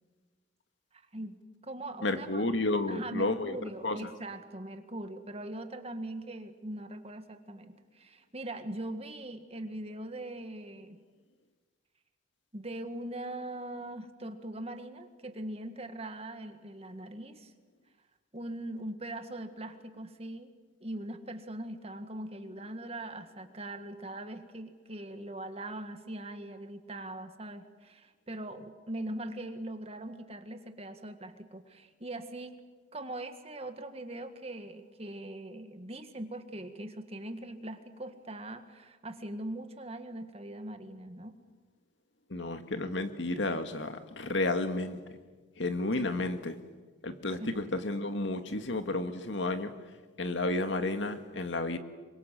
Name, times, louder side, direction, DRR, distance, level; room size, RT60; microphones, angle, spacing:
voice 1, 0.9-2.5 2.9-11.0 12.5-17.5 18.3-20.5 20.8-32.6 32.9-41.4 46.0-46.4 47.4-47.7, right 1 dB, 30° right, 7 dB, 1.8 m, -41 dB
voice 2, 2.0-3.6 3.8-4.0 42.3-45.0 45.6-46.6 47.0-49.7 50.2-51.8, left 2 dB, 70° left, 8 dB, 1.9 m, -31 dB
27.0 x 24.0 x 7.6 m, 1.4 s
head